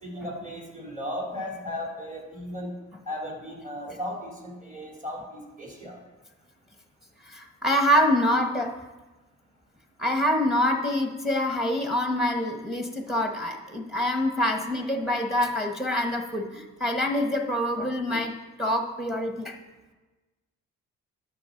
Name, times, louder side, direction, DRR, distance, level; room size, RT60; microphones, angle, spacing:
voice 1, 0.0-2.7 3.1-6.0, left 1 dB, 25° right, -2 dB, 3.2 m, -36 dB
voice 2, 7.3-8.7 10.0-19.6, equal, ahead, 4 dB, 1.1 m, -26 dB
12.0 x 6.6 x 3.8 m, 1.2 s
cardioid pair, 90°, 30 cm